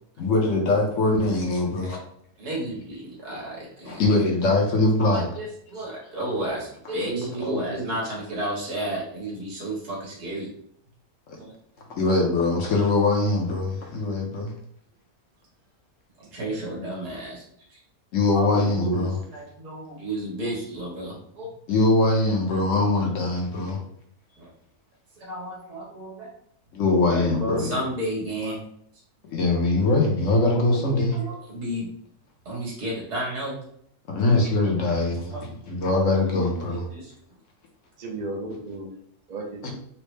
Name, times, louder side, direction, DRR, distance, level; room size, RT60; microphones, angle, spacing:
voice 1, 0.2-2.0 3.9-5.3 12.0-14.5 18.1-19.2 21.7-23.8 26.7-27.7 29.3-31.2 34.1-35.4 35.7-36.9 39.6-39.7, left 2 dB, 60° left, 0 dB, 1.0 m, -22 dB
voice 2, 2.4-4.0 5.0-10.5 11.4-11.5 16.3-17.4 17.7-17.8 18.3-18.6 19.1-21.5 24.4-24.5 25.2-26.3 27.1-28.6 29.5-29.6 30.4-30.6 31.1-31.9 32.5-33.6 34.3-34.4 35.3-35.4 36.3-36.6 36.9-37.1, right 1 dB, 90° right, -4 dB, 1.9 m, -32 dB
voice 3, 7.0-8.0 18.5-19.1 38.0-38.9 39.3-39.6, right 2 dB, 50° right, 0 dB, 0.5 m, -32 dB
4.2 x 2.0 x 3.2 m, 0.68 s
omnidirectional pair, 1.6 m